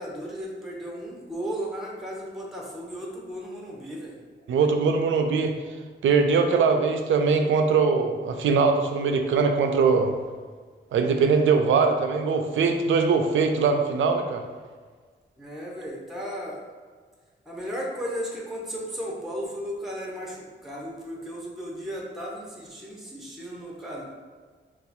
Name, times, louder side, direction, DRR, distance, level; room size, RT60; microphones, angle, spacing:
voice 1, 0.0-4.2 15.4-16.6 17.5-24.0, equal, ahead, -3 dB, 0.8 m, -35 dB
voice 2, 4.5-5.6 6.0-10.1 10.9-14.4, right 5 dB, 90° right, 5 dB, 0.4 m, -21 dB
2.6 x 2.4 x 4.1 m, 1.5 s
cardioid pair, 75°, 20 cm